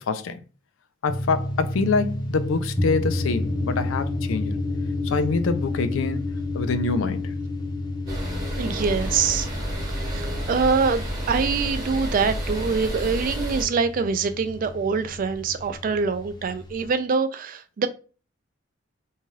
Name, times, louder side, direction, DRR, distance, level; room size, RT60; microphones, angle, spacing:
voice 1, 0.1-0.4 1.0-4.6 5.0-6.2 6.5-7.3, left 4 dB, 85° left, 0.4 m, -25 dB
sound 1, 1.1-16.9, left 2 dB, 25° left, 0.6 m, -31 dB
sound 2, 8.1-13.6, equal, 20° right, 0.8 m, -30 dB
voice 2, 8.6-9.5 9.9-17.9, right 5 dB, 45° right, 0.3 m, -24 dB
2.7 x 2.3 x 3.1 m
head